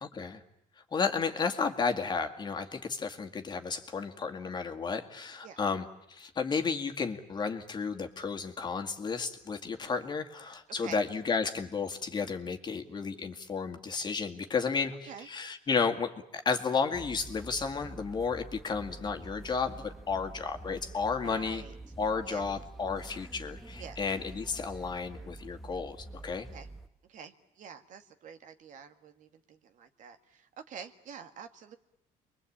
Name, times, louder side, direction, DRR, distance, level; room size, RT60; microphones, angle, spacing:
voice 1, 0.0-0.4 0.9-21.6 22.0-26.0 26.2-26.5, left 5 dB, 30° left, 5 dB, 2.2 m, -32 dB
sound 1, 16.9-26.9, right 2 dB, ahead, 1.2 m, -47 dB
voice 2, 21.2-21.7 22.3-22.5 23.8-24.0 26.5-26.7 27.1-31.8, right 6 dB, 55° right, 8 dB, 1.9 m, -47 dB
29.5 x 23.0 x 8.7 m, 0.79 s
cardioid pair, 135°, 15 cm